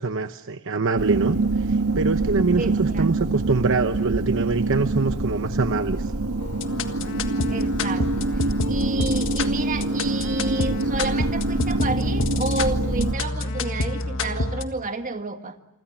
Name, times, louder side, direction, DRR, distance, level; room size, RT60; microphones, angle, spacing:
voice 1, 0.0-6.1, right 3 dB, 60° right, 9 dB, 1.0 m, -24 dB
sound 1, 1.0-13.1, right 2 dB, 80° right, 1.4 m, -25 dB
voice 2, 2.6-3.1 7.5-15.6, right 3 dB, 35° right, 7 dB, 1.9 m, -31 dB
sound 2, 6.4-14.6, left 2 dB, 60° left, 1.7 m, -29 dB
28.0 x 25.0 x 7.4 m, 1.0 s
head